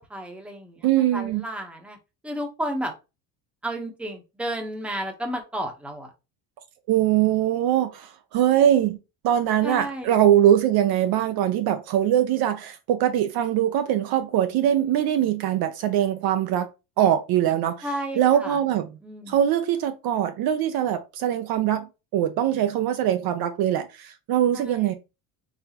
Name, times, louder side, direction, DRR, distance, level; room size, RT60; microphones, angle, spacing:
voice 1, 0.1-0.9 1.1-2.0 2.2-2.9 3.6-6.1 9.6-10.1 17.8-18.6 19.0-19.4 24.5-24.9, right 1 dB, 5° right, 0.8 m, -32 dB
voice 2, 0.8-1.4 6.9-9.0 9.2-16.7 17.0-17.9 18.2-18.9 19.3-21.9 22.1-24.9, right 11 dB, 50° right, 0.6 m, -22 dB
4.1 x 3.8 x 2.8 m
cardioid pair, 130°, 46 cm